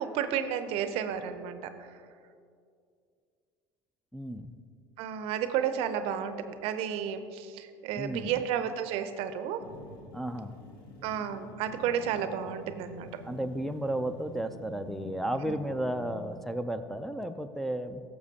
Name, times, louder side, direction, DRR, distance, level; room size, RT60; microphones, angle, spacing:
voice 1, 0.0-1.9 5.0-9.7 11.0-13.2 15.4-15.5, right 8 dB, 65° right, 10 dB, 0.6 m, -32 dB
voice 2, 4.1-4.6 7.9-8.4 10.1-10.6 13.2-18.0, right 1 dB, ahead, 6 dB, 0.5 m, -33 dB
sound 1, 9.6-16.4, left 2 dB, 85° left, 1.1 m, -48 dB
14.0 x 6.8 x 2.8 m, 2.3 s
hypercardioid pair, 80°, 11 cm